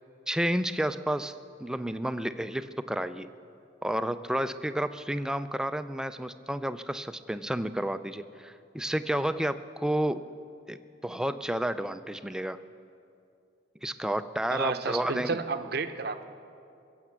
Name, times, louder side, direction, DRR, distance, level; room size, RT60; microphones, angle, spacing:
voice 1, 0.3-3.3 3.8-10.2 10.7-10.8 11.0-12.6 13.8-15.4, right 1 dB, 5° right, 11 dB, 0.4 m, -31 dB
voice 2, 14.5-16.2, right 4 dB, 55° right, 10 dB, 0.7 m, -31 dB
22.0 x 8.0 x 7.4 m, 2.6 s
head